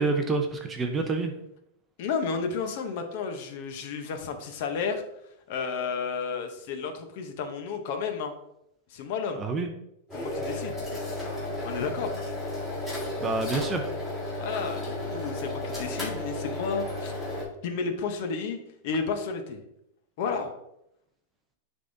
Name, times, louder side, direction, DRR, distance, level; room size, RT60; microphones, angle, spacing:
voice 1, 0.0-1.3 9.4-9.7 13.2-13.9, right 3 dB, 15° right, 5 dB, 0.5 m, -27 dB
voice 2, 2.0-5.0 5.5-8.3 8.9-9.4 10.1-10.8 11.6-12.2 14.4-17.1 17.6-18.6 18.8-19.6 20.2-20.5, left 5 dB, 45° left, 6 dB, 0.7 m, -32 dB
sound 1, 10.1-17.4, left 1 dB, 5° left, 1.9 m, -33 dB
10.0 x 3.6 x 2.6 m, 0.80 s
supercardioid pair, 170°, 0 cm